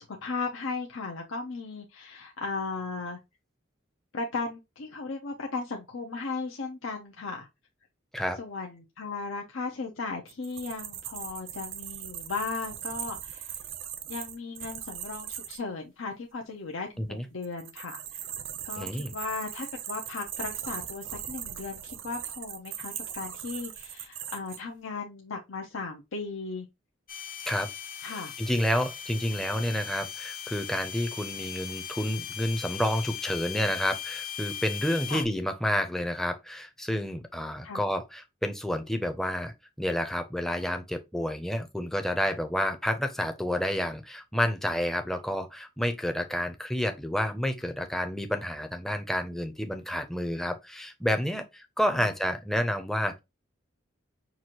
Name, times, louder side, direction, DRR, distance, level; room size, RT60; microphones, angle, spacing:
voice 1, 0.0-3.2 4.1-7.5 8.4-13.6 14.1-18.2 18.6-26.7 28.0-28.3 35.1-35.2 37.6-37.8 52.0-52.1, left 4 dB, 85° left, 0.7 m, -36 dB
sound 1, 10.3-15.6 17.4-24.6, right 10 dB, 70° right, 0.7 m, -39 dB
voice 2, 18.8-19.1 27.5-27.7 28.1-53.2, equal, ahead, 0.5 m, -30 dB
sound 2, 27.1-35.3, left 9 dB, 45° left, 0.7 m, -39 dB
6.0 x 2.5 x 2.9 m
head